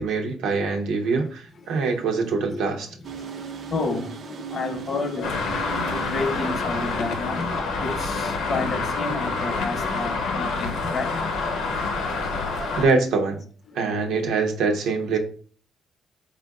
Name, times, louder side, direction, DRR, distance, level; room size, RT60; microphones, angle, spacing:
voice 1, 0.0-3.0 12.8-13.4 13.7-15.2, right 4 dB, 85° right, 0.8 m, -24 dB
sound 1, 3.0-13.0, right 5 dB, 55° right, 0.5 m, -41 dB
voice 2, 3.2-5.4 5.9-11.2 11.8-12.0 12.3-12.5 13.7-13.8, left 3 dB, 45° left, 0.6 m, -31 dB
Traffic noise roadway noise, 5.2-12.8, left 3 dB, 85° left, 0.8 m, -27 dB
4.3 x 2.5 x 3.6 m
cardioid pair, 90°, 0 cm